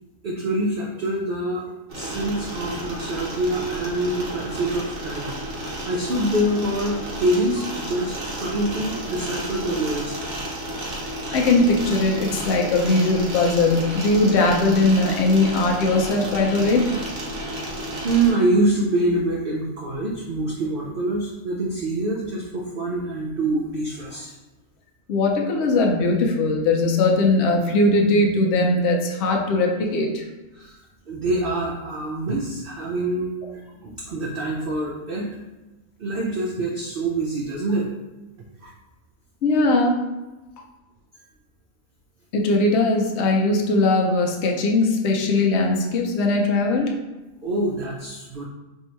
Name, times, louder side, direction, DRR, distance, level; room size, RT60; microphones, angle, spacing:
voice 1, 0.2-1.6 1.9-5.3 5.9-10.2 17.6-24.3 30.5-30.8 31.1-35.4 36.0-37.9 38.6-38.7 47.4-48.5, right 1 dB, 80° right, -2 dB, 0.4 m, -25 dB
sound 1, 1.9-18.3, right 1 dB, 60° right, 1.2 m, -32 dB
voice 2, 11.3-16.9 25.1-30.2 39.4-40.0 42.3-46.9, left 2 dB, 60° left, 1 dB, 0.7 m, -20 dB
2.8 x 2.6 x 4.3 m, 1.1 s
omnidirectional pair, 1.5 m